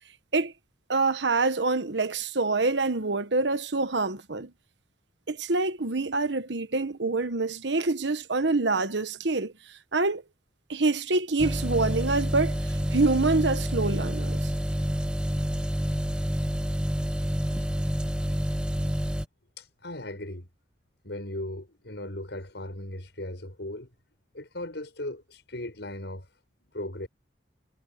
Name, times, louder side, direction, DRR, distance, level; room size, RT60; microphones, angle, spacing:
voice 1, 0.9-4.5 5.3-9.5 9.9-10.2 10.7-14.5, right 3 dB, 75° right, 1.3 m, -26 dB
sound 1, 11.4-19.3, equal, 5° right, 0.8 m, -28 dB
voice 2, 19.6-20.5 21.0-23.9 24.3-26.3 26.6-27.1, left 1 dB, 70° left, 6.3 m, -37 dB
head